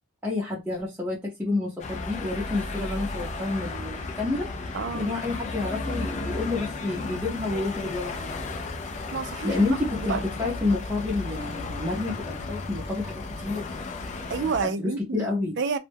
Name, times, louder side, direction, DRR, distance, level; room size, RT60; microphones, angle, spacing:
voice 1, 0.2-8.3 9.4-13.7 14.6-15.6, left 2 dB, 10° right, 0.6 m, -29 dB
sound 1, 1.8-14.6, left 3 dB, 35° left, 0.4 m, -34 dB
voice 2, 4.7-5.1 9.1-9.6 10.0-10.5 14.3-15.3 15.6-15.8, right 5 dB, 55° right, 0.4 m, -29 dB
2.2 x 2.1 x 3.3 m
head